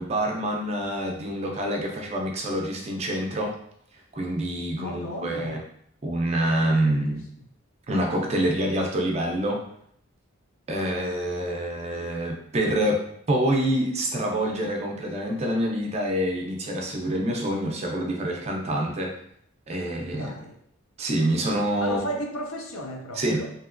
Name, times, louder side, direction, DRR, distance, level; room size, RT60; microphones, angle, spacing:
voice 1, 0.0-3.5 4.1-5.6 6.0-7.2 7.9-9.6 10.7-13.0 13.3-19.2 19.7-20.3 21.0-22.1 23.1-23.5, right 1 dB, 30° right, 1 dB, 0.4 m, -26 dB
voice 2, 4.8-5.6 6.6-7.0 7.4-7.5 20.1-20.6 21.8-23.5, equal, 75° left, 2 dB, 0.5 m, -34 dB
2.9 x 2.8 x 2.4 m, 0.69 s
head